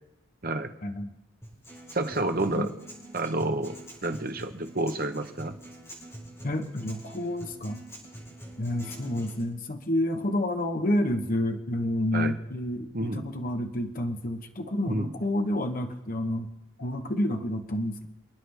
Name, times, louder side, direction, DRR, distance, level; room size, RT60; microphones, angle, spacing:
voice 1, 0.8-1.1 2.5-2.7 6.4-7.8 8.6-16.5 16.8-18.1, left 1 dB, 40° left, 5 dB, 1.0 m, -29 dB
Acoustic guitar, 1.4-9.4, right 1 dB, 15° left, 7.0 m, -46 dB
voice 2, 1.9-2.7 3.1-3.7 4.0-5.5 12.1-12.3 12.9-13.3 14.9-15.1, right 2 dB, 45° right, 7 dB, 1.0 m, -29 dB
29.0 x 9.8 x 3.5 m, 0.90 s
head